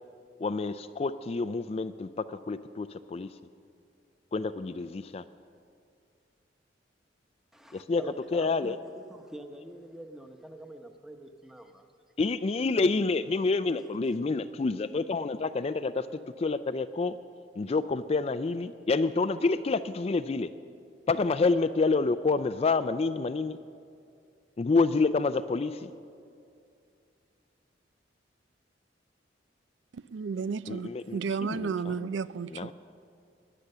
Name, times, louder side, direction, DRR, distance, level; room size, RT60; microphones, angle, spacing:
voice 1, 0.4-3.4 4.3-5.2 7.7-8.0 8.3-8.8 12.2-17.2 17.6-20.5 21.1-23.6 24.6-25.9 30.7-32.1 32.5-32.7, left 3 dB, 35° left, 0.4 m, -28 dB
voice 2, 7.5-11.9, right 1 dB, ahead, 0.9 m, -46 dB
voice 3, 29.9-32.7, right 5 dB, 85° right, 0.4 m, -33 dB
20.0 x 10.0 x 6.7 m
head